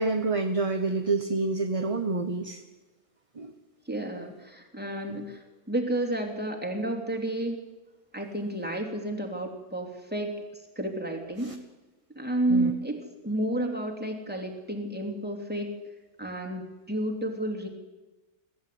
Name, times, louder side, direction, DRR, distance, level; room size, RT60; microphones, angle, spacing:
voice 1, 0.0-2.6 3.3-3.5 5.1-5.2 11.4-11.5 12.5-12.7, right 3 dB, 25° right, 6 dB, 1.0 m, -28 dB
voice 2, 3.9-7.6 8.1-11.5 12.1-15.7 16.2-17.7, right 1 dB, 5° right, 0 dB, 3.2 m, -31 dB
22.0 x 15.0 x 9.4 m, 1.1 s
omnidirectional pair, 1.6 m